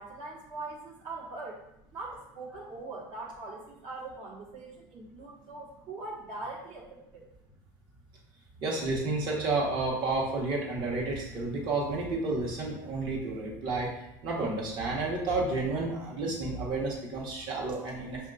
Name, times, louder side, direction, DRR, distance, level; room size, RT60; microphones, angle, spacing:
voice 1, 0.0-1.6 1.9-7.3, right 3 dB, 65° right, -3 dB, 1.5 m, -42 dB
voice 2, 8.6-13.9 14.2-18.2, right 3 dB, 45° right, -2 dB, 1.4 m, -31 dB
5.7 x 2.8 x 2.6 m, 0.85 s
supercardioid pair, 120°, 10 cm